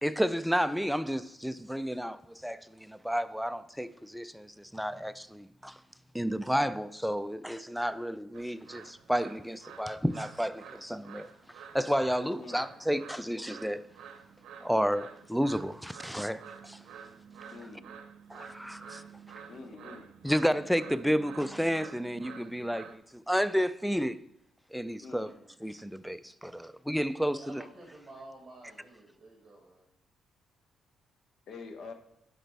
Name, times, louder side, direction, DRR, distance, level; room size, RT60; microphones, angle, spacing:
voice 1, 0.0-5.8 6.1-11.3 11.7-13.9 14.6-16.8 18.3-19.0 20.2-24.2 24.7-25.3 25.6-27.6, equal, ahead, 0.4 m, -31 dB
sound 1, 8.3-23.0, right 7 dB, 75° right, 0.7 m, -50 dB
voice 2, 17.5-18.0 19.5-20.1 25.0-25.3 31.5-31.9, left 4 dB, 65° left, 1.0 m, -46 dB
voice 3, 27.3-29.9, right 2 dB, 25° right, 1.9 m, -50 dB
10.0 x 5.0 x 3.4 m
cardioid pair, 90°, 0 cm